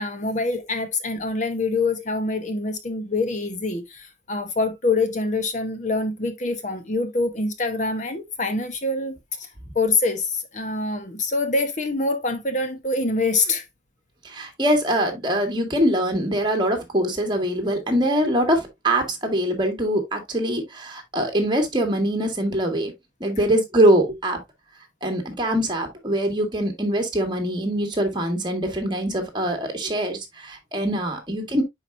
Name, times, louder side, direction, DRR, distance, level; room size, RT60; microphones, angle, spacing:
voice 1, 0.0-9.5 9.7-13.6, left 3 dB, 40° left, 1.0 m, -25 dB
voice 2, 14.2-22.9 23.2-24.4 25.0-31.6, right 1 dB, 25° right, 2.0 m, -23 dB
9.7 x 4.9 x 2.6 m
head